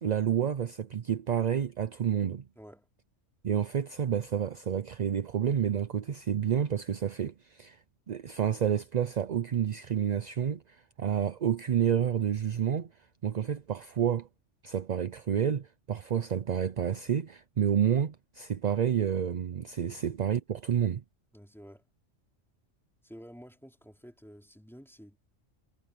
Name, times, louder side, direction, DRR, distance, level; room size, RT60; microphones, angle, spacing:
voice 1, 0.0-2.5 3.4-7.8 8.1-12.9 13.2-14.3 14.6-21.0, right 9 dB, 50° right, 0.5 m, -29 dB
voice 2, 2.6-2.9 19.8-20.0 21.3-21.9 23.0-25.2, equal, ahead, 4.0 m, -51 dB
omnidirectional pair, 1.3 m